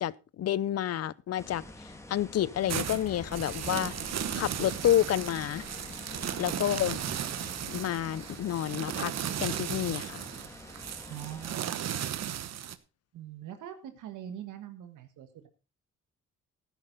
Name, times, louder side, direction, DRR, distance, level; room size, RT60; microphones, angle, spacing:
voice 1, 0.0-3.9 4.3-5.7 6.4-7.0 7.7-9.1 9.4-10.2, left 11 dB, 55° left, 0.6 m, -29 dB
sound 1, 1.4-11.6, left 1 dB, 10° left, 2.2 m, -48 dB
sound 2, 2.6-12.8, right 10 dB, 60° right, 1.1 m, -36 dB
sound 3, 2.7-7.8, left 4 dB, 25° left, 1.8 m, -47 dB
voice 2, 11.1-12.6 13.1-15.5, right 11 dB, 80° right, 1.6 m, -43 dB
13.0 x 10.5 x 4.0 m
cardioid pair, 90°, 30 cm